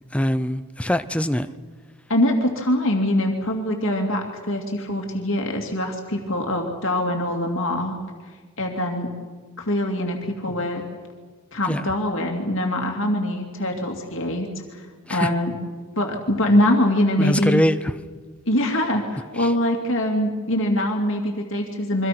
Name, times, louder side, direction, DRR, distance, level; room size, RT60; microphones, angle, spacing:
voice 1, 0.1-1.5 11.7-11.8 15.1-15.3 17.2-17.9 19.4-19.5, equal, 5° left, 11 dB, 0.6 m, -23 dB
voice 2, 2.1-8.0 8.6-9.1 9.6-10.8 11.5-14.5 15.1-15.5 16.0-17.6 18.5-22.1, left 1 dB, 60° left, 1 dB, 2.7 m, -23 dB
28.0 x 24.0 x 6.1 m, 1.5 s
head